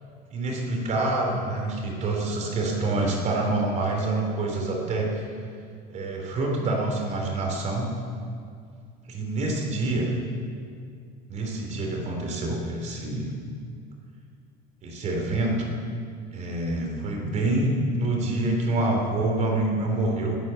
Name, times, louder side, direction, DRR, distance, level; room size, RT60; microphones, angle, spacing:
voice 1, 0.3-5.3 5.9-7.9 9.1-10.1 11.3-13.3 14.8-15.7 16.3-20.4, right 2 dB, 35° right, 1 dB, 3.4 m, -26 dB
20.0 x 9.4 x 7.1 m, 2.3 s
cardioid pair, 150°, 20 cm